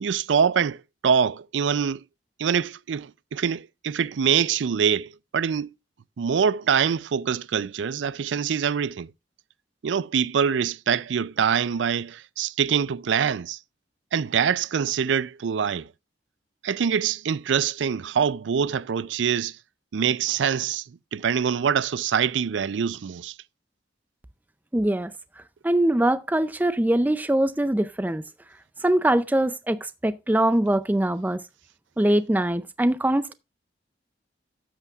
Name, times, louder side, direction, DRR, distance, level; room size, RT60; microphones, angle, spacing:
voice 1, 0.0-2.0 2.4-5.7 6.2-9.1 9.8-13.6 14.1-15.9 16.6-19.6 19.9-23.4, right 7 dB, 80° right, 0.4 m, -24 dB
voice 2, 24.7-25.1 25.6-28.3 28.8-31.4 32.0-33.3, right 1 dB, 10° right, 0.4 m, -22 dB
12.5 x 8.3 x 2.3 m
head